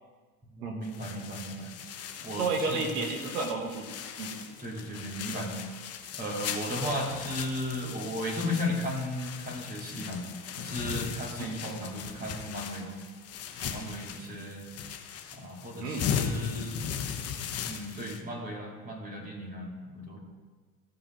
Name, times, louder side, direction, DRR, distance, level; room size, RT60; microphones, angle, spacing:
voice 1, 0.6-1.7 2.2-2.9 4.6-5.6 6.1-10.3 10.6-13.0 13.6-14.7 15.3-16.8 17.7-20.2, left 1 dB, 20° right, 0 dB, 2.4 m, -35 dB
sound 1, 0.8-18.2, left 8 dB, 30° left, 1.0 m, -38 dB
voice 2, 2.4-3.9 4.2-4.3 11.4-11.6 15.8-16.1, right 4 dB, 85° right, 2 dB, 2.0 m, -31 dB
14.5 x 5.6 x 4.3 m, 1.4 s
hypercardioid pair, 95°, 46 cm